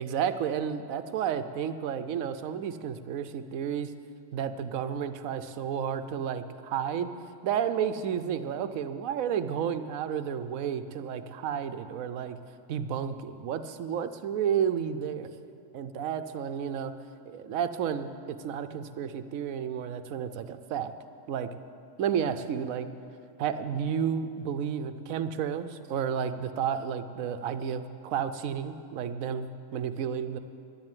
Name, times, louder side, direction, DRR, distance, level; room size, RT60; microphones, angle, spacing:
voice 1, 0.0-3.9 4.3-7.1 7.4-12.4 12.7-15.3 15.7-16.9 17.3-20.9 21.3-21.5 22.0-22.9 23.4-30.4, right 8 dB, 85° right, 11 dB, 1.1 m, -31 dB
11.0 x 11.0 x 9.0 m, 2.5 s
omnidirectional pair, 1.4 m